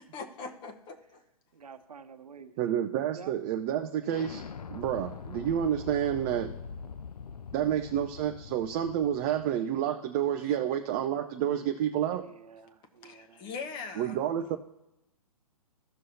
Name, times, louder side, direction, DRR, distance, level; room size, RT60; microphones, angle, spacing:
voice 1, 0.1-1.2 10.4-10.6 13.0-14.2, left 5 dB, 25° left, 7 dB, 0.9 m, -41 dB
voice 2, 1.5-2.5 3.1-3.3 6.8-6.9 12.2-13.5, right 6 dB, 75° right, 9 dB, 0.9 m, -49 dB
voice 3, 2.6-4.4 4.7-6.5 7.5-12.2 14.0-14.6, right 10 dB, 30° right, 5 dB, 0.4 m, -29 dB
Explosion, 4.1-9.6, left 6 dB, 85° left, 0.4 m, -43 dB
15.0 x 6.1 x 2.8 m, 0.91 s
figure-of-eight pair, 125°, 19 cm